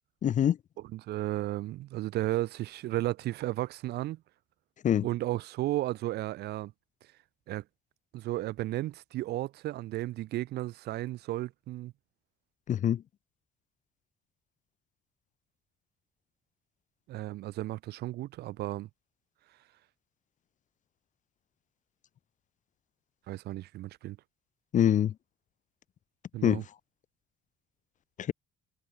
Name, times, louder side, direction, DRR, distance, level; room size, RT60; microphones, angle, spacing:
voice 1, 0.2-0.6 4.8-5.1 12.7-13.0 24.7-25.1 26.4-26.6 28.2-28.3, left 10 dB, 45° left, 0.9 m, -24 dB
voice 2, 0.9-4.2 5.0-6.7 7.5-7.6 8.1-11.9 17.1-18.9 23.3-24.2 26.3-26.6, right 16 dB, 75° right, 1.7 m, -34 dB
cardioid pair, 110°, 17 cm